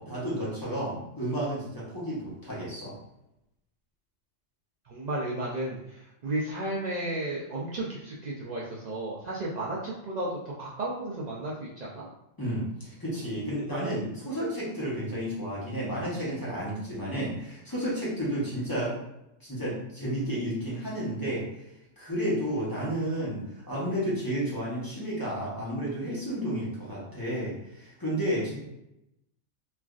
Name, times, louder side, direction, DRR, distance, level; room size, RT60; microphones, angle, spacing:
voice 1, 0.0-2.9 12.4-19.0 19.4-21.5 22.0-28.6, equal, 20° left, -7 dB, 0.7 m, -32 dB
voice 2, 4.9-12.1, right 1 dB, 85° right, -6 dB, 0.3 m, -33 dB
3.3 x 2.3 x 2.3 m, 0.86 s
omnidirectional pair, 1.3 m